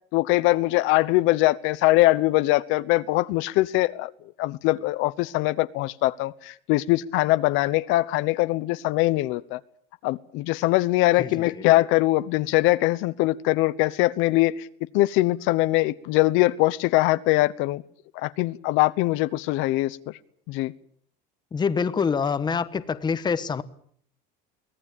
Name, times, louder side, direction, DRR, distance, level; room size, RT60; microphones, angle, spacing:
voice 1, 0.1-4.1 4.4-9.6 10.0-14.7 14.9-17.8 18.1-20.1 20.5-20.7, left 18 dB, 70° left, 1.0 m, -22 dB
voice 2, 11.2-11.6 21.5-23.6, left 6 dB, 20° left, 1.2 m, -26 dB
24.0 x 18.0 x 8.7 m
cardioid pair, 145°, 21 cm